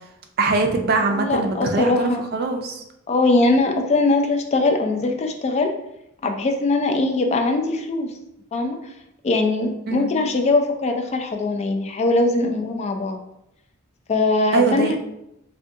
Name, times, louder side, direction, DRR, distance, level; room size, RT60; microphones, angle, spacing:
voice 1, 0.4-2.8 9.9-10.1 14.5-15.0, right 3 dB, 50° right, 4 dB, 0.4 m, -22 dB
voice 2, 1.1-2.2 3.1-5.7 6.2-8.2 8.5-8.8 9.2-13.2 14.1-15.0, left 2 dB, 35° left, 4 dB, 0.3 m, -21 dB
3.5 x 2.2 x 2.6 m, 0.82 s
head